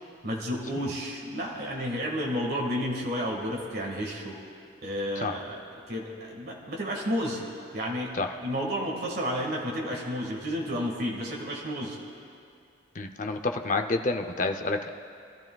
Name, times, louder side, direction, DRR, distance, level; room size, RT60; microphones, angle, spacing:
voice 1, 0.2-4.4 4.8-5.6 5.9-7.4 7.7-8.1 8.4-12.0, equal, 50° right, -2 dB, 1.7 m, -31 dB
voice 2, 13.0-14.9, left 3 dB, 40° left, 6 dB, 0.6 m, -28 dB
24.0 x 13.0 x 2.3 m, 2.5 s
head